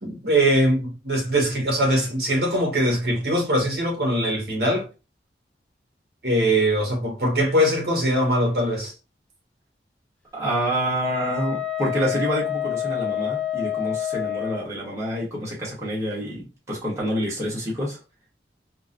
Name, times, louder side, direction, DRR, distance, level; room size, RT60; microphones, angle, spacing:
voice 1, 0.0-4.9 6.2-8.9, right 1 dB, 60° right, 1.4 m, -22 dB
voice 2, 10.3-18.0, right 1 dB, 15° right, 1.2 m, -27 dB
Wind instrument woodwind instrument, 11.0-14.7, left 11 dB, 5° left, 0.4 m, -28 dB
3.7 x 2.1 x 2.5 m
head